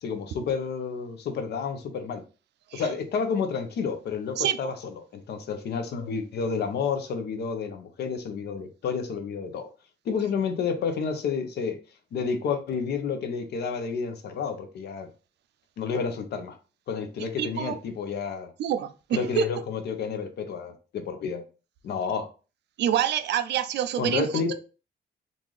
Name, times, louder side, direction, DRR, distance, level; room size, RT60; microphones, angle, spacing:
voice 1, 0.0-2.2 2.7-9.7 10.0-11.8 12.1-15.1 15.8-16.6 16.9-18.5 19.1-21.4 21.8-22.3 24.0-24.5, left 5 dB, 70° left, 0.7 m, -30 dB
voice 2, 17.4-17.8 18.6-19.4 22.8-24.5, right 10 dB, 75° right, 0.4 m, -27 dB
3.8 x 2.5 x 3.1 m
cardioid pair, 160°, 18 cm